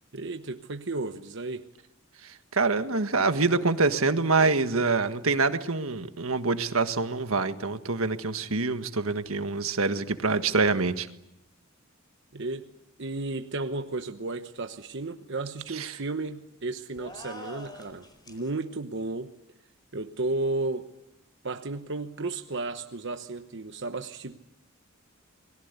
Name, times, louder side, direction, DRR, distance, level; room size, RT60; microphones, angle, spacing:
voice 1, 0.1-1.6 12.3-12.7 13.0-19.3 19.9-20.9 21.4-24.4, right 2 dB, 60° right, 7 dB, 1.1 m, -33 dB
voice 2, 2.2-11.1 15.7-16.0, right 3 dB, 80° right, 9 dB, 1.6 m, -26 dB
sound 1, 17.0-18.5, left 1 dB, 20° left, 4.5 m, -44 dB
29.5 x 21.5 x 8.3 m, 0.85 s
head